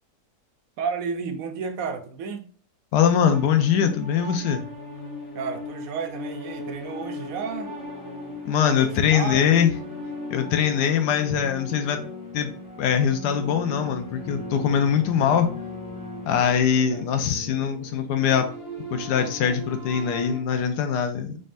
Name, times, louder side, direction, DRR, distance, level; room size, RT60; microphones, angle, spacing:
voice 1, 0.8-2.4 5.3-7.7 8.6-9.6 16.4-17.1, right 6 dB, 65° right, 6 dB, 1.0 m, -32 dB
voice 2, 2.9-4.6 8.4-9.7 10.3-12.1 12.3-12.5 12.8-15.5 16.2-18.5 18.9-21.4, left 8 dB, 90° left, 7 dB, 1.2 m, -22 dB
sound 1, 3.3-20.4, left 1 dB, 20° left, 0.7 m, -38 dB
4.2 x 3.7 x 2.5 m, 0.42 s
omnidirectional pair, 1.7 m